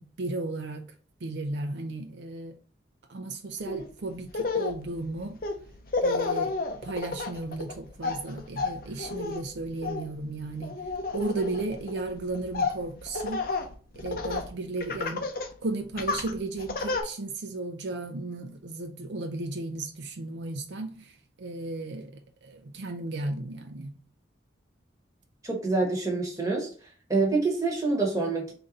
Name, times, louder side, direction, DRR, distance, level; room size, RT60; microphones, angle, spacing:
voice 1, 0.2-0.8 1.2-2.5 3.1-5.4 6.0-6.5 6.8-10.7 11.1-13.5 14.0-15.3 15.6-23.9, right 2 dB, 70° right, 0.5 m, -34 dB
Laughter, 3.7-3.9 4.3-14.5 14.8-15.5 16.0-17.0, left 3 dB, 50° left, 0.6 m, -31 dB
voice 2, 25.4-26.7 27.1-28.5, right 3 dB, 20° right, 1.1 m, -26 dB
3.8 x 2.6 x 4.0 m
head